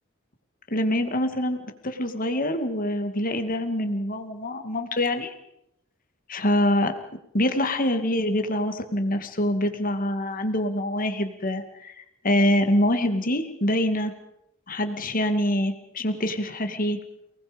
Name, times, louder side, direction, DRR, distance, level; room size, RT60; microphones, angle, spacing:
voice 1, 0.7-1.6 1.8-5.3 6.3-6.9 7.3-11.9 12.2-14.1 14.7-17.0, left 1 dB, 45° left, 7 dB, 2.4 m, -25 dB
29.0 x 19.5 x 5.3 m, 0.80 s
head